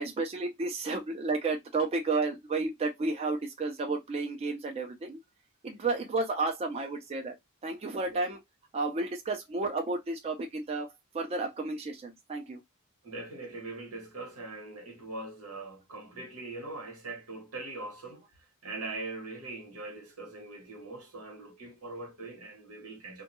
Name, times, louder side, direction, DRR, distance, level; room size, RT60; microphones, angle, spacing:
voice 1, 0.0-5.2 5.6-7.3 7.6-8.4 8.7-12.6, right 3 dB, 30° right, 0.4 m, -32 dB
voice 2, 13.0-18.3 18.6-23.2, right 2 dB, 90° right, 1.1 m, -41 dB
2.2 x 2.1 x 2.9 m
head